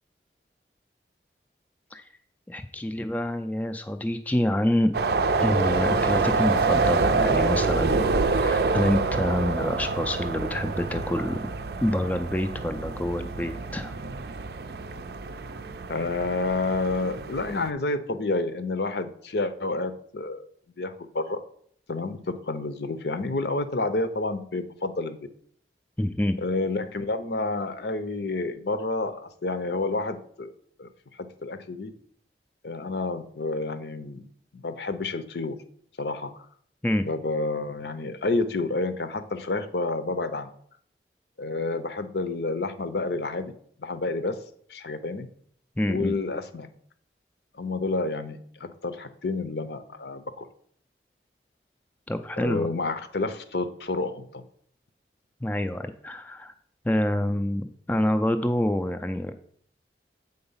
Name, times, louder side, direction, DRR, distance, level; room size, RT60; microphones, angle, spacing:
voice 1, 2.5-4.9 5.4-11.4 11.8-13.9 26.0-26.4 36.8-37.0 45.8-46.2 52.1-52.7 55.4-56.5 56.8-59.3, left 1 dB, 10° left, 7 dB, 0.3 m, -27 dB
sound 1, 4.9-17.7, right 4 dB, 65° right, 0.4 m, -26 dB
voice 2, 15.9-20.4 20.8-21.4 21.9-25.2 26.4-30.5 30.8-30.9 31.2-31.9 32.6-34.3 34.5-35.5 36.0-36.5 37.0-40.5 41.4-43.5 43.8-44.4 44.7-45.3 45.9-46.7 47.5-50.5 52.4-54.4, left 3 dB, 70° left, 10 dB, 0.7 m, -29 dB
7.9 x 3.9 x 5.5 m, 0.62 s
head